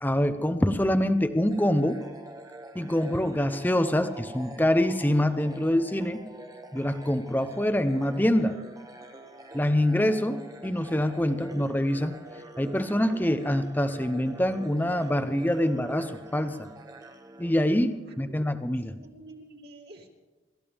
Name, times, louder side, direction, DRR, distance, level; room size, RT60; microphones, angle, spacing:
voice 1, 0.0-2.0 2.7-6.2 6.7-8.5 9.5-12.1 12.6-16.7 17.4-18.9, left 1 dB, 10° left, 9 dB, 0.7 m, -25 dB
sound 1, 1.4-18.1, right 1 dB, 20° right, 1.0 m, -46 dB
voice 2, 18.1-18.6 18.9-20.1, right 2 dB, 55° right, -1 dB, 2.7 m, -49 dB
26.5 x 14.0 x 3.6 m, 1.2 s
head